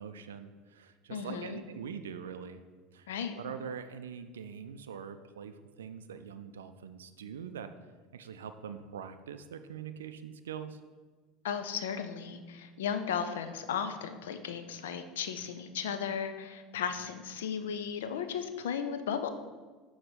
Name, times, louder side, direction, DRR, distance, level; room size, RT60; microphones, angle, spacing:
voice 1, 0.0-2.6 2.9-3.1 3.3-7.7 8.1-10.8, right 7 dB, 85° right, 10 dB, 0.3 m, -43 dB
voice 2, 1.1-1.6 3.1-3.4 11.4-19.3, left 7 dB, 80° left, 9 dB, 0.5 m, -35 dB
6.1 x 3.9 x 5.1 m, 1.4 s
hypercardioid pair, 80°, 0 cm